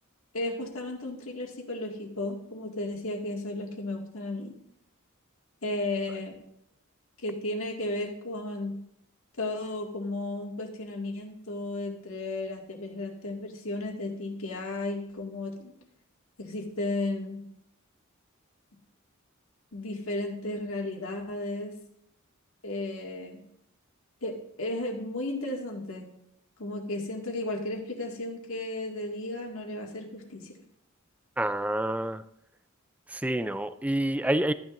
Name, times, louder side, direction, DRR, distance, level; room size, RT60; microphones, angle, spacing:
voice 1, 0.3-4.5 5.6-6.4 7.2-8.7 9.4-15.7 16.4-17.4 19.7-21.7 22.6-23.4 24.2-26.1 26.6-30.5, left 2 dB, 70° left, 0 dB, 2.1 m, -34 dB
voice 2, 31.4-32.2 33.1-34.5, right 1 dB, 5° right, 13 dB, 0.4 m, -28 dB
14.0 x 10.0 x 2.6 m, 0.76 s
head